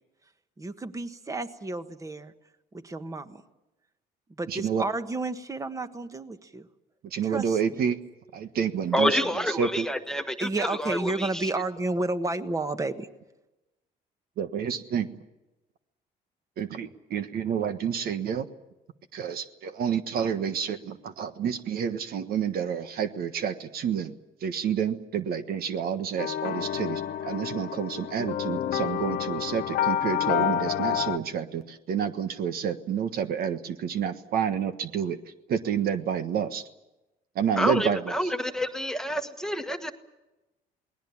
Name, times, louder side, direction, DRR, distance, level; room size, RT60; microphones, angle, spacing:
voice 1, 0.6-2.3 2.8-3.4 4.4-6.7 7.2-7.8 10.4-13.1, right 2 dB, 20° right, 10 dB, 1.5 m, -31 dB
voice 2, 4.5-4.8 7.1-8.0 8.3-9.2 9.6-9.8 14.4-15.1 16.6-18.5 19.1-24.1 24.4-35.2 35.5-36.6 37.3-38.0, right 7 dB, 65° right, 10 dB, 1.4 m, -29 dB
voice 3, 8.9-11.5 37.6-39.9, equal, 5° left, 6 dB, 1.4 m, -28 dB
sound 1, 26.2-31.2, left 10 dB, 60° left, 1.2 m, -29 dB
28.0 x 20.0 x 7.2 m, 0.99 s
cardioid pair, 110°, 17 cm